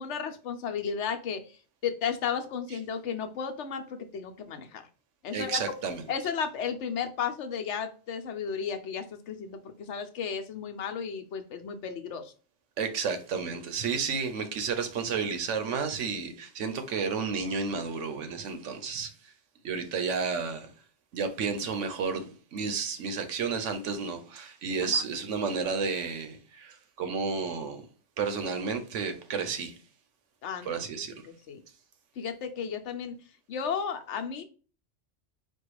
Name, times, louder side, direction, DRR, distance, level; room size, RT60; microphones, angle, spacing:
voice 1, 0.0-4.8 5.2-5.6 6.1-12.3 24.8-25.0 30.4-30.8 31.2-31.6 32.2-33.1 33.5-34.4, left 7 dB, 75° left, 1.0 m, -34 dB
voice 2, 5.3-6.0 12.8-19.1 19.6-20.7 21.1-27.8 28.2-29.7 30.6-31.1, right 5 dB, 90° right, 1.1 m, -31 dB
4.5 x 2.3 x 4.6 m
omnidirectional pair, 1.2 m